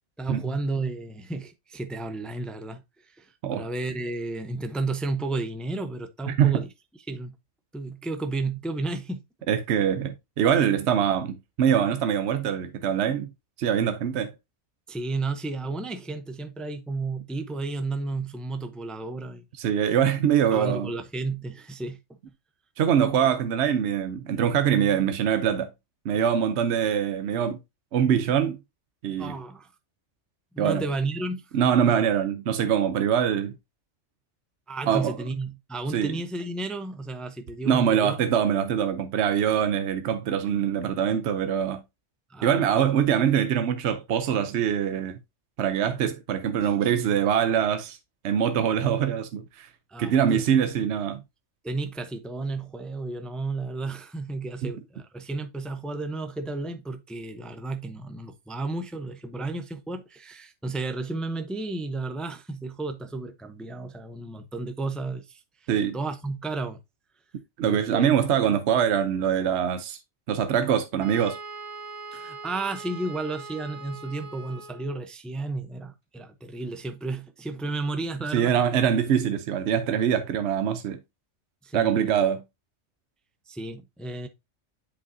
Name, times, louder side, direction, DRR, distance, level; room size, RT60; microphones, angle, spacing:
voice 1, 0.2-6.7 7.1-7.3 7.7-9.2 14.9-19.4 20.5-22.0 29.2-29.7 30.5-31.4 31.9-32.0 34.7-38.3 42.3-42.9 49.9-50.5 51.6-66.8 67.6-68.3 72.1-78.5 81.6-82.2 83.5-84.3, right 3 dB, ahead, 0.4 m, -33 dB
voice 2, 6.3-6.6 9.5-13.3 13.6-14.3 19.6-20.9 22.8-25.7 26.0-27.6 27.9-28.6 29.0-29.3 30.6-30.8 31.5-33.5 34.9-35.1 35.9-36.1 37.7-41.8 42.4-45.2 45.6-48.0 48.2-49.7 50.0-51.2 54.6-54.7 65.7-66.0 67.6-70.0 70.3-71.4 78.3-81.0 81.7-82.4, right 8 dB, 70° right, 0.9 m, -23 dB
Wind instrument woodwind instrument, 71.0-75.0, right 3 dB, 25° right, 1.3 m, -41 dB
8.6 x 5.1 x 2.6 m
omnidirectional pair, 1.2 m